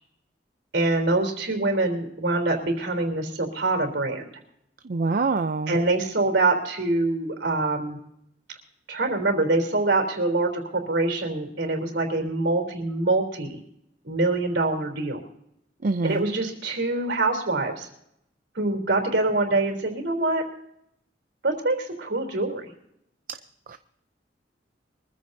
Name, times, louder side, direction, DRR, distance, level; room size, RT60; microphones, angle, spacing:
voice 1, 0.7-4.2 5.7-8.0 8.9-13.6 14.0-15.2 16.0-17.9 18.5-20.4 21.4-22.7, right 2 dB, 70° right, 4 dB, 3.5 m, -25 dB
voice 2, 4.8-5.8 15.8-16.2 23.7-23.8, right 3 dB, 50° right, 9 dB, 0.5 m, -25 dB
23.5 x 15.0 x 2.7 m, 0.76 s
head